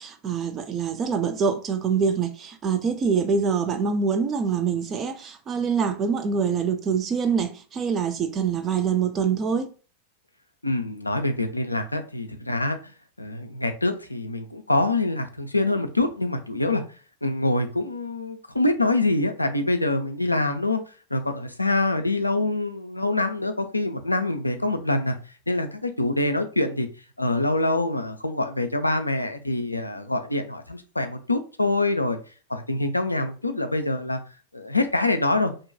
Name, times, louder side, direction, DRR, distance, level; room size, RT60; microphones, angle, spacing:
voice 1, 0.0-9.7, right 6 dB, 25° right, 0.3 m, -25 dB
voice 2, 10.6-12.9 13.2-16.8 17.2-20.8 21.1-25.2 25.5-26.9 27.2-32.2 32.5-34.2 34.5-35.5, left 2 dB, 85° left, 0.3 m, -25 dB
2.6 x 2.2 x 2.5 m
figure-of-eight pair, 90°, 0 cm